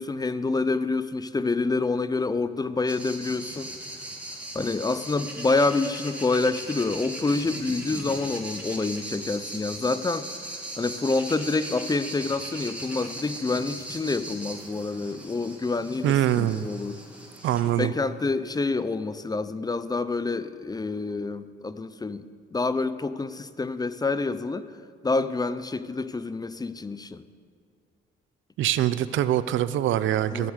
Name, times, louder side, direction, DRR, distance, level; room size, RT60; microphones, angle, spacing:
voice 1, 0.0-3.7 4.5-10.3 10.8-17.0 17.8-22.2 22.5-24.7 25.0-27.2 30.3-30.5, left 3 dB, 20° left, 14 dB, 0.5 m, -27 dB
sound 1, 2.9-17.6, right 1 dB, 5° right, 2.4 m, -38 dB
voice 2, 16.0-16.7 17.4-17.9 28.6-30.5, right 12 dB, 75° right, 14 dB, 0.6 m, -24 dB
14.0 x 7.3 x 8.0 m, 2.1 s
cardioid pair, 90°, 20 cm